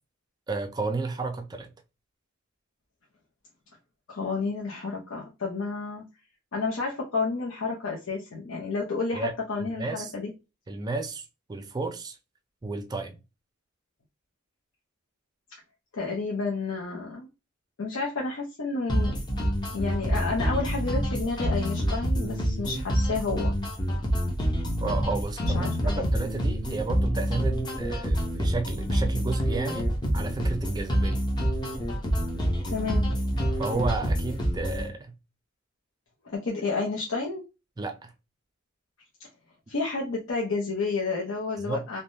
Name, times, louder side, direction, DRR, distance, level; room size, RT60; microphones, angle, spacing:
voice 1, 0.5-1.7 9.1-9.3 9.6-10.1 10.7-12.2 12.6-13.2 24.8-31.3 33.6-35.1 37.8-38.1 41.6-41.9, right 3 dB, 20° right, 0.3 m, -32 dB
voice 2, 4.1-6.0 6.5-10.3 15.9-17.3 17.8-19.2 19.7-23.5 25.4-26.1 31.9-32.0 32.6-33.2 36.2-37.4 39.7-42.0, left 4 dB, 70° left, 0.7 m, -31 dB
sound 1, 18.9-34.9, equal, 20° left, 0.6 m, -27 dB
3.2 x 2.2 x 2.6 m
head